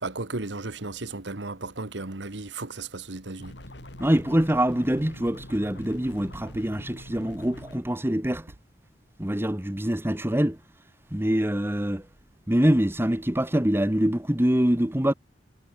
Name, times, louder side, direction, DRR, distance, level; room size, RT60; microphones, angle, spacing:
voice 1, 0.0-3.5, right 3 dB, 75° right, 1.6 m, -35 dB
sound 1, 3.4-7.8, left 1 dB, 75° left, 6.9 m, -44 dB
voice 2, 4.0-8.5 9.2-10.6 11.1-12.1 12.5-15.1, equal, 15° right, 1.2 m, -24 dB
head